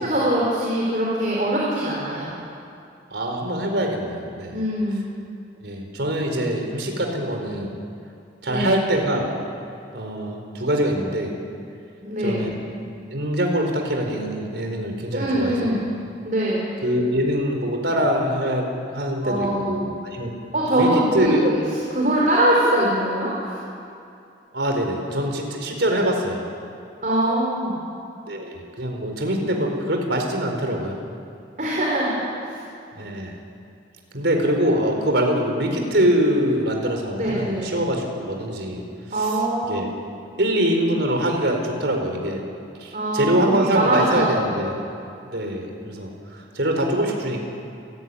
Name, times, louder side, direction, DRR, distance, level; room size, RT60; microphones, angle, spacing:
voice 1, 0.0-2.4 4.5-5.1 8.5-8.8 12.0-12.5 15.1-15.9 16.2-16.7 19.2-19.9 20.5-21.5 21.9-23.5 27.0-27.8 31.6-32.6 37.2-37.7 39.1-39.9 42.9-44.6, right 1 dB, 45° right, -5 dB, 4.6 m, -23 dB
voice 2, 3.1-4.6 5.6-7.7 8.4-9.3 9.9-11.3 12.2-12.6 13.1-15.8 16.8-20.3 20.7-20.9 21.1-21.5 24.5-26.4 28.3-31.0 32.9-33.4 34.1-38.8 39.7-39.9 40.4-42.4 42.8-44.8 45.2-46.1 46.5-47.4, equal, 70° right, 3 dB, 4.5 m, -23 dB
29.0 x 15.0 x 9.9 m, 2.5 s
head